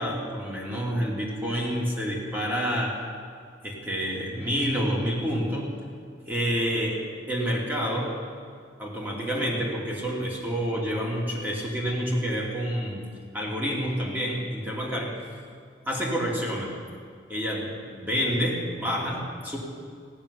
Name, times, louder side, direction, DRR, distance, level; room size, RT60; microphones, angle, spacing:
voice 1, 0.0-3.0 3.6-5.7 6.2-8.2 8.8-13.1 13.3-15.2 15.9-16.7 17.3-19.6, equal, 10° right, -4 dB, 2.8 m, -28 dB
16.0 x 7.4 x 9.9 m, 2.1 s
head